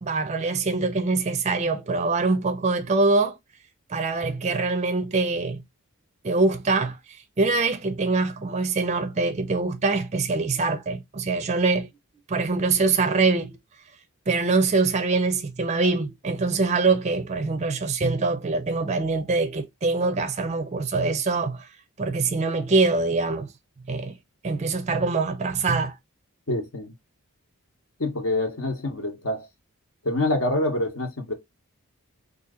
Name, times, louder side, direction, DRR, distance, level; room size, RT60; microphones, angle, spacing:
voice 1, 0.0-3.4 3.9-5.6 6.2-7.0 7.4-11.9 12.3-13.6 14.3-21.7 22.0-23.5 23.9-24.2 24.4-25.9, right 3 dB, 30° right, 0.4 m, -24 dB
voice 2, 26.5-26.9 28.0-29.5 30.0-31.3, left 2 dB, 65° left, 0.9 m, -26 dB
2.8 x 2.6 x 3.6 m
head